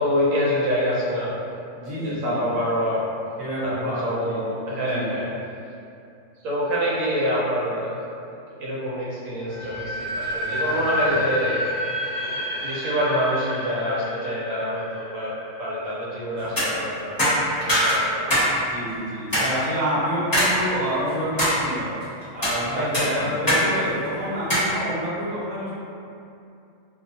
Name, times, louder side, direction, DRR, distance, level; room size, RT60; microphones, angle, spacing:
voice 1, 0.0-1.3 1.9-3.1 3.6-5.3 6.4-11.7 12.1-15.3 15.6-18.3 19.3-19.5 22.7-23.2, equal, 85° right, -7 dB, 1.0 m, -26 dB
voice 2, 1.7-2.5 3.4-4.4 4.8-5.1 10.6-11.1 18.7-25.7, equal, 35° right, -11 dB, 0.9 m, -28 dB
sound 1, 9.5-16.4, left 1 dB, 55° right, 0.4 m, -30 dB
sound 2, 16.4-16.7 17.2-18.5 18.8-18.9 19.3-19.5 20.3-20.5 21.0-21.5 22.2-22.6 22.9-23.6 23.9-24.0 24.5-24.7, equal, 20° left, 0.6 m, -21 dB
2.3 x 2.3 x 2.7 m, 2.6 s
omnidirectional pair, 1.4 m